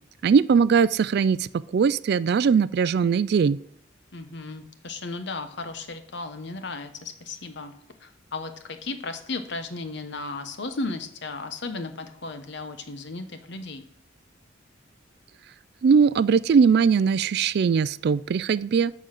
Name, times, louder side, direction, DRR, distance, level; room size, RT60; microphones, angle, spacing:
voice 1, 0.2-3.6 15.8-18.9, right 6 dB, 55° right, 18 dB, 0.3 m, -20 dB
voice 2, 4.1-7.7 8.0-13.8, left 3 dB, 60° left, 8 dB, 1.0 m, -35 dB
11.5 x 3.9 x 7.5 m, 0.67 s
head